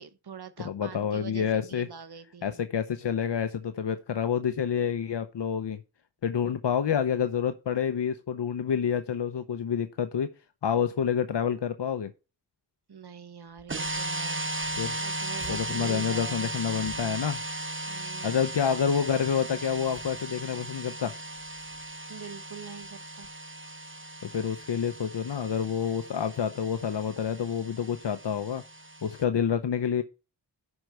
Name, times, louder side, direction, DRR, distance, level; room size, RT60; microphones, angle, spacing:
voice 1, 0.0-2.6 12.9-17.3 17.8-18.4 22.1-23.3, right 7 dB, 65° right, 1.2 m, -45 dB
voice 2, 0.6-1.9 2.4-5.8 6.2-10.3 10.6-12.1 14.8-14.9 15.5-17.4 18.2-21.1 24.2-28.6 29.0-30.0, left 7 dB, 80° left, 0.8 m, -28 dB
sound 1, 13.5-14.1 14.5-18.2 18.6-18.9 19.4-20.7 21.2-22.1 22.8-23.0 23.2-23.3, left 1 dB, 25° left, 3.0 m, -54 dB
sound 2, 13.7-29.2, right 2 dB, 30° right, 0.9 m, -37 dB
11.0 x 4.6 x 5.4 m
wide cardioid pair, 75°, 42 cm